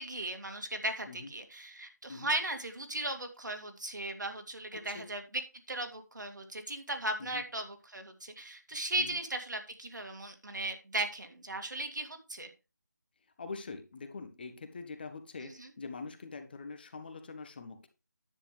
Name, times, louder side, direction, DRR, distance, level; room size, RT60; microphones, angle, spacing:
voice 1, 0.0-12.5 15.4-15.7, right 2 dB, 80° right, 5 dB, 2.4 m, -37 dB
voice 2, 4.7-5.1 7.2-7.4 9.0-9.2 13.4-17.9, left 4 dB, 30° left, 8 dB, 1.2 m, -44 dB
10.0 x 8.4 x 3.3 m, 0.29 s
figure-of-eight pair, 165°, 10 cm